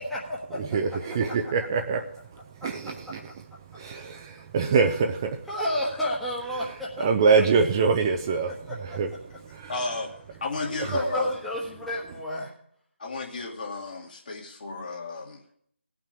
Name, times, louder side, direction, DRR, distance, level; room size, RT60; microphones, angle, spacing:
voice 1, 0.0-0.8 1.3-1.5 2.6-2.7 5.5-7.1 7.3-7.4 8.5-9.0 10.5-12.5, left 1 dB, ahead, -7 dB, 1.3 m, -31 dB
voice 2, 0.6-2.0 2.6-3.2 3.7-5.4 7.0-8.5 8.8-9.1 9.5-9.7 10.9-11.0, right 5 dB, 20° right, 4 dB, 0.6 m, -24 dB
voice 3, 9.7-10.1 10.4-11.3 13.0-15.4, left 3 dB, 45° left, -1 dB, 2.5 m, -33 dB
17.0 x 6.0 x 9.0 m, 0.69 s
figure-of-eight pair, 160°, 7 cm